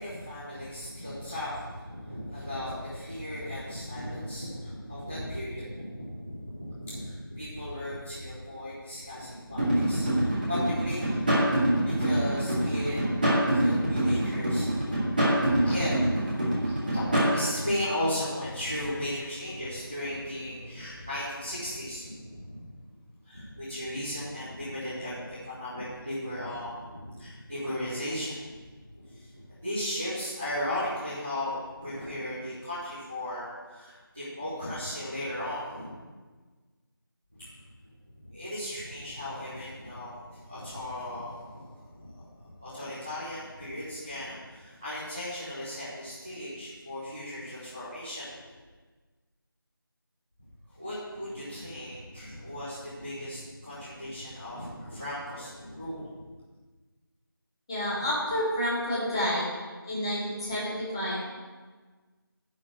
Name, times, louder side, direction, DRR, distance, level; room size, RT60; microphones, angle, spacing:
voice 1, 0.0-22.6 23.2-28.7 29.0-29.3 29.6-35.9 37.3-37.7 38.2-48.4 50.7-56.1, left 1 dB, 5° right, -14 dB, 0.6 m, -36 dB
sound 1, 9.6-17.4, right 1 dB, 25° right, 1.8 m, -25 dB
voice 2, 57.7-59.5 59.8-61.2, equal, 10° left, -10 dB, 2.1 m, -29 dB
11.0 x 4.3 x 7.8 m, 1.4 s
figure-of-eight pair, 170°, 12 cm